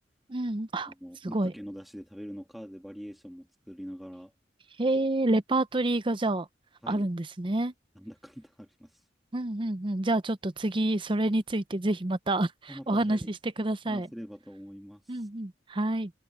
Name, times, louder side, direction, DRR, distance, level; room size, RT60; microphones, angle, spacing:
voice 1, 0.3-0.9 1.3-1.5 4.8-6.5 6.9-7.7 9.3-14.1 15.1-16.1, right 2 dB, 30° right, 0.7 m, -28 dB
voice 2, 0.8-4.3 6.8-7.1 8.0-9.0 12.7-13.3 13.9-15.3, equal, ahead, 1.7 m, -44 dB
head